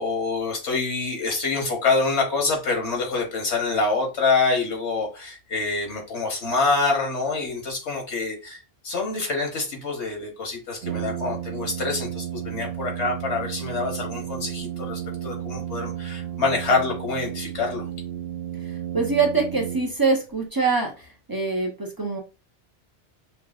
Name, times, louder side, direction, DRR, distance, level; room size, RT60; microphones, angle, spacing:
voice 1, 0.0-17.8, left 3 dB, 75° left, 1.4 m, -26 dB
Brass instrument, 10.8-20.3, right 11 dB, 65° right, 0.7 m, -33 dB
voice 2, 18.9-20.9 21.3-22.2, right 4 dB, 25° right, 0.7 m, -23 dB
5.9 x 2.3 x 2.4 m
omnidirectional pair, 1.2 m